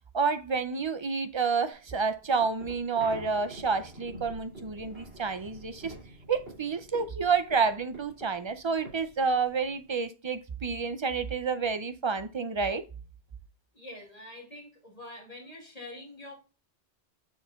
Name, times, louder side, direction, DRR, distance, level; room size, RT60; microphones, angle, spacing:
voice 1, 0.1-5.9 6.3-12.8, right 5 dB, 40° right, 0.4 m, -29 dB
sound 1, 1.8-9.9, right 1 dB, 65° right, 3.2 m, -47 dB
voice 2, 13.7-16.3, left 1 dB, 35° left, 2.4 m, -45 dB
6.9 x 6.3 x 2.4 m
omnidirectional pair, 1.1 m